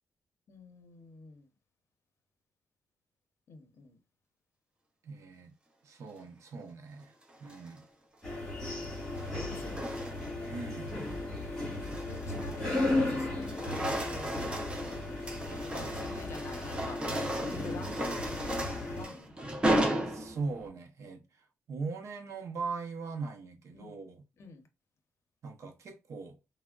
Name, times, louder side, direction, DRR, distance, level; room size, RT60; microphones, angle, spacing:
voice 1, 0.5-1.5 3.5-4.0 9.1-10.0 12.1-15.0 15.7-18.1 18.9-19.4 23.7-24.0 24.4-24.7, left 4 dB, 50° left, 0.6 m, -48 dB
voice 2, 5.0-5.5 5.8-7.1 7.4-7.8 10.5-10.9 15.7-16.1 20.1-24.2 25.4-26.4, right 4 dB, 60° right, 0.7 m, -40 dB
sound 1, 7.3-7.8 8.9-10.5 10.9-11.2 11.6-13.1 13.3-20.7, right 1 dB, 15° right, 0.5 m, -35 dB
sound 2, 8.2-19.1, left 2 dB, 5° left, 1.4 m, -35 dB
3.4 x 2.1 x 2.3 m
cardioid pair, 135°, 6 cm